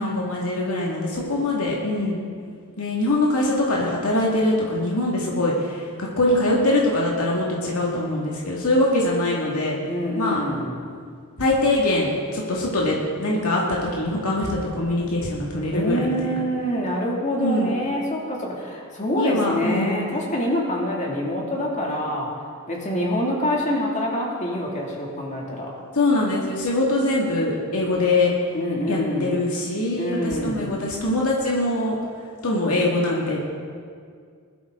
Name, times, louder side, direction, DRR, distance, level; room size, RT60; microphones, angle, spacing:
voice 1, 0.0-2.2 2.8-9.8 10.2-10.4 11.4-16.4 17.4-17.7 19.1-20.1 25.9-28.3 28.9-32.0 32.4-33.4, left 1 dB, 75° left, -3 dB, 2.2 m, -23 dB
voice 2, 9.9-10.7 15.7-22.3 22.7-25.7 28.5-29.4 30.0-30.7, left 1 dB, 35° left, -2 dB, 2.5 m, -26 dB
21.5 x 12.5 x 3.8 m, 2.1 s
head